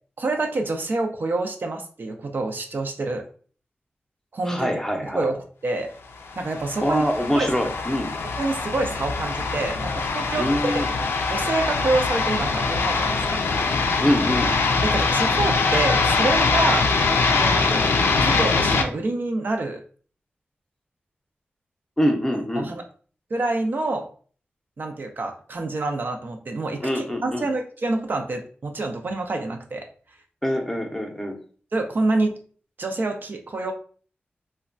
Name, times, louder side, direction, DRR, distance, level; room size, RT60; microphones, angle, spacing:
voice 1, 0.2-3.2 4.3-4.7 5.0-5.9 6.4-7.0 7.3-7.5 8.4-10.9 11.3-13.4 14.8-16.9 17.3-17.9 18.2-19.8 22.6-22.8 23.3-24.1 24.8-29.9 31.7-32.4 32.8-33.7, right 2 dB, 55° right, 4 dB, 0.4 m, -27 dB
voice 2, 4.5-5.2 6.8-8.1 10.4-10.9 14.0-14.5 22.0-22.7 26.8-27.4 30.4-31.3, equal, 10° left, 3 dB, 0.6 m, -24 dB
sound 1, 6.3-18.8, left 4 dB, 85° left, 0.3 m, -23 dB
3.1 x 2.2 x 2.5 m, 0.43 s
wide cardioid pair, 70°, 4 cm